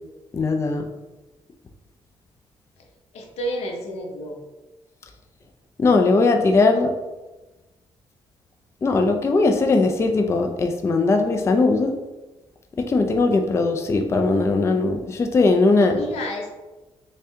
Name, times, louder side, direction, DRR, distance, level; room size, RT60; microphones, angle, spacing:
voice 1, 0.3-0.8 5.8-6.9 8.8-11.9 12.8-16.0, left 3 dB, 25° left, 4 dB, 0.3 m, -19 dB
voice 2, 3.1-4.4 15.8-16.6, equal, 85° left, 1 dB, 0.7 m, -31 dB
3.5 x 3.3 x 2.7 m, 1.1 s
cardioid pair, 115°, 11 cm